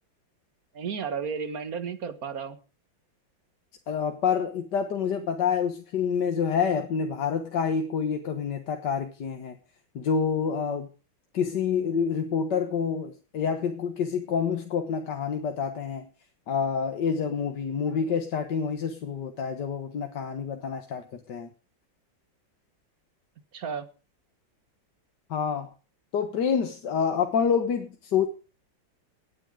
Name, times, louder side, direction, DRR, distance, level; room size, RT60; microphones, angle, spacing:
voice 1, 0.7-2.6 23.5-23.9, right 6 dB, 50° right, 11 dB, 1.9 m, -33 dB
voice 2, 3.9-9.6 10.0-10.9 11.3-16.1 16.5-21.5 25.3-25.7 26.1-28.3, left 6 dB, 60° left, 6 dB, 1.9 m, -27 dB
18.5 x 9.3 x 5.1 m, 0.34 s
omnidirectional pair, 2.1 m